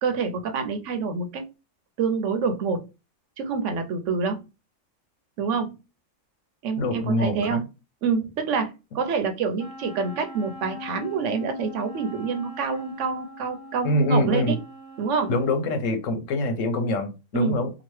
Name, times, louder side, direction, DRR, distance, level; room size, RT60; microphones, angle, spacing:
voice 1, 0.0-1.5 2.0-2.9 3.4-4.4 5.4-5.8 6.6-7.6 8.0-14.6 15.0-15.3 17.3-17.6, right 5 dB, 80° right, 0.9 m, -27 dB
voice 2, 6.8-7.6 13.8-14.6 15.3-17.7, left 1 dB, 85° left, 1.1 m, -24 dB
Wind instrument woodwind instrument, 9.6-15.7, left 3 dB, 65° left, 1.5 m, -42 dB
2.9 x 2.4 x 3.1 m
omnidirectional pair, 1.3 m